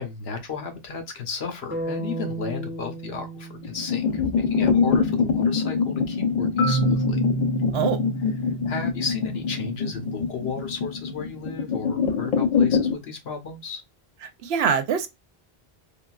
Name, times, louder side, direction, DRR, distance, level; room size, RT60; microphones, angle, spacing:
voice 1, 0.0-7.2 8.7-13.8, left 5 dB, 80° left, 1.1 m, -34 dB
sound 1, 1.7-5.8, right 2 dB, 15° right, 0.5 m, -36 dB
sound 2, 3.6-13.0, left 5 dB, 50° left, 0.7 m, -24 dB
Marimba xylophone, 6.6-10.5, right 4 dB, 15° left, 0.8 m, -30 dB
voice 2, 14.2-15.1, right 7 dB, 85° right, 0.9 m, -24 dB
3.6 x 2.4 x 2.3 m
omnidirectional pair, 1.0 m